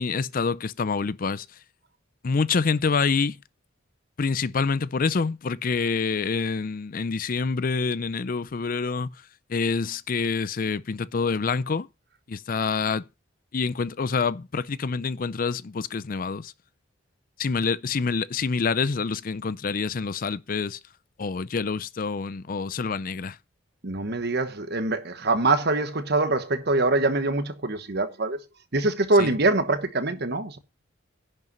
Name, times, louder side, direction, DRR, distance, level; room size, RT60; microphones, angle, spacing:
voice 1, 0.0-1.5 2.2-3.4 4.2-9.1 9.5-11.9 12.3-13.0 13.5-16.5 17.4-20.8 21.2-23.4 29.2-29.3, left 5 dB, 45° left, 0.5 m, -26 dB
voice 2, 23.8-28.4 28.7-30.6, right 2 dB, 55° right, 1.2 m, -24 dB
10.5 x 5.4 x 5.4 m
head